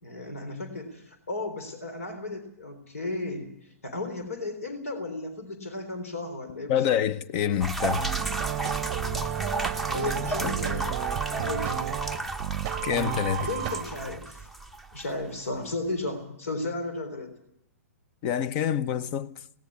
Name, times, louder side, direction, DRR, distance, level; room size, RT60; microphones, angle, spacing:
voice 1, 0.0-7.0 9.9-11.0 11.3-11.9 13.5-14.5 14.9-17.3, left 2 dB, 70° left, 3.7 m, -34 dB
voice 2, 6.7-8.1 10.4-10.5 12.8-13.5 18.2-19.3, left 9 dB, 35° left, 0.9 m, -26 dB
sound 1, 7.6-15.2, right 2 dB, ahead, 0.8 m, -33 dB
sound 2, 7.8-13.8, right 14 dB, 35° right, 0.7 m, -32 dB
18.5 x 18.5 x 8.5 m
figure-of-eight pair, 115°, 8 cm